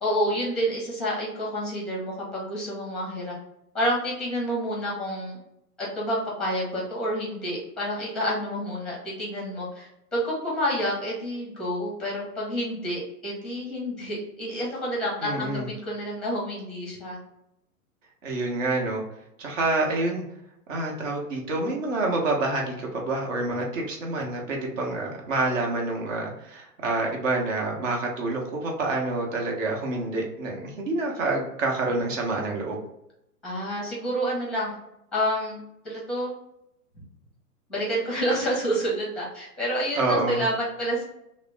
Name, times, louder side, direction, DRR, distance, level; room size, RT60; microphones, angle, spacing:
voice 1, 0.0-3.4 3.7-5.4 5.8-17.2 33.4-34.7 35.1-35.6 35.8-36.3 37.7-41.0, equal, ahead, -4 dB, 0.7 m, -29 dB
voice 2, 15.2-15.7 18.2-19.0 19.4-20.2 20.7-32.8 40.0-40.4, right 2 dB, 50° right, 0 dB, 1.0 m, -27 dB
2.9 x 2.0 x 3.3 m, 0.81 s
hypercardioid pair, 140°, 47 cm